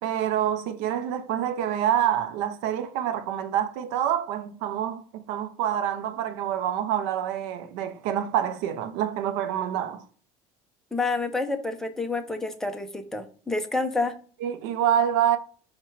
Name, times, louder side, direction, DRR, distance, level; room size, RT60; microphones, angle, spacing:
voice 1, 0.0-10.0 14.4-15.4, right 10 dB, 75° right, 0.5 m, -27 dB
voice 2, 10.9-14.2, left 3 dB, 5° left, 0.5 m, -28 dB
4.7 x 2.2 x 4.4 m
cardioid pair, 155°, 14 cm